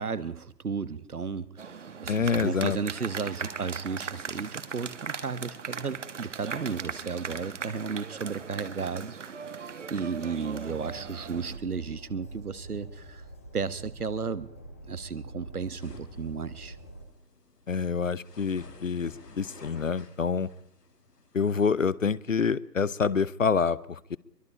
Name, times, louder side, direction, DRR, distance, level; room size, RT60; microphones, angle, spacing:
voice 1, 0.0-13.2 13.5-14.5 14.9-16.8, right 5 dB, 60° right, 15 dB, 1.4 m, -34 dB
sound 1, 1.6-11.6, right 6 dB, 45° right, 1.6 m, -39 dB
voice 2, 2.1-2.8 17.7-20.5 21.3-24.2, left 5 dB, 50° left, 21 dB, 0.7 m, -27 dB
Train, 10.8-17.1, right 1 dB, 10° left, 0.8 m, -46 dB
sound 2, 15.8-21.5, left 3 dB, 70° left, 2.6 m, -52 dB
23.0 x 23.0 x 5.0 m, 0.72 s
figure-of-eight pair, 145°, 49 cm